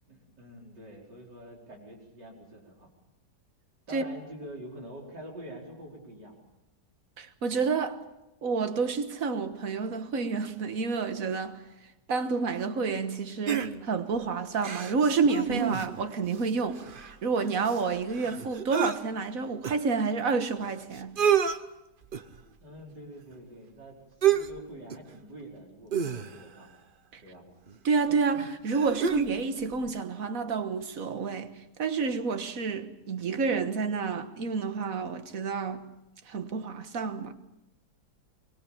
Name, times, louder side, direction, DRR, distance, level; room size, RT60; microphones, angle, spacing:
voice 1, 0.0-2.9 3.9-6.4 22.6-26.8 27.2-27.5, right 1 dB, 85° right, 5.4 m, -46 dB
voice 2, 7.2-8.0 8.4-11.6 12.1-21.2 27.1-27.2 27.8-35.8 36.3-37.3, right 5 dB, 55° right, 1.7 m, -29 dB
sound 1, 13.5-14.1 14.6-16.1 16.4-16.5 16.7-19.0 19.6-19.7 20.6-20.7 21.0-21.6 22.1-22.4 24.2-24.6 24.9-25.1 25.9-26.6 27.7-27.8 28.4-29.4 29.7-29.8, right 8 dB, 40° right, 0.8 m, -29 dB
24.0 x 20.5 x 7.2 m
omnidirectional pair, 1.8 m